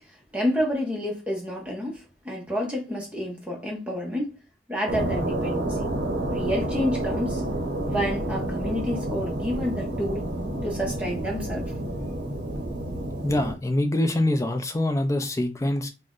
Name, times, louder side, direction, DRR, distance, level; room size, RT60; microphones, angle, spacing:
voice 1, 0.1-4.4 4.7-5.9 6.3-7.4 7.8-10.3 10.6-11.7, equal, 5° right, 0.7 m, -29 dB
sound 1, 4.9-13.5, right 1 dB, 65° right, 0.7 m, -29 dB
voice 2, 13.2-15.9, left 1 dB, 15° left, 0.4 m, -24 dB
2.6 x 2.1 x 3.6 m
head